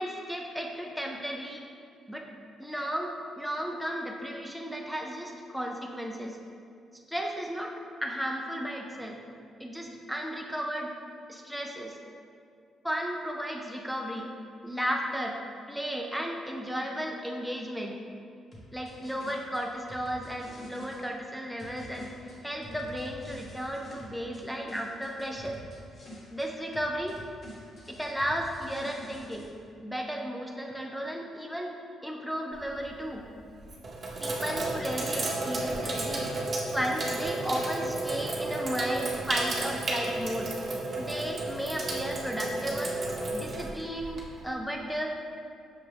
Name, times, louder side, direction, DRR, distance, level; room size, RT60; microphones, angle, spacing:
voice 1, 0.0-1.7 2.1-2.3 2.6-6.4 7.1-7.7 8.0-9.2 9.6-10.9 11.3-11.9 12.8-14.3 14.6-15.4 15.7-17.9 18.7-22.1 22.4-25.6 26.3-27.2 27.9-29.5 29.8-31.8 32.0-33.2 34.2-36.3 36.7-40.5 41.0-43.0 43.3-45.2, equal, ahead, 1 dB, 0.3 m, -34 dB
sound 1, 18.5-21.0 21.6-24.4 24.7-26.5 26.7-29.5, left 1 dB, 45° left, 0.9 m, -47 dB
Sink (filling or washing), 32.5-32.9 33.6-44.5, right 2 dB, 40° right, 0.8 m, -32 dB
6.0 x 2.3 x 3.3 m, 2.4 s
cardioid pair, 90°, 0 cm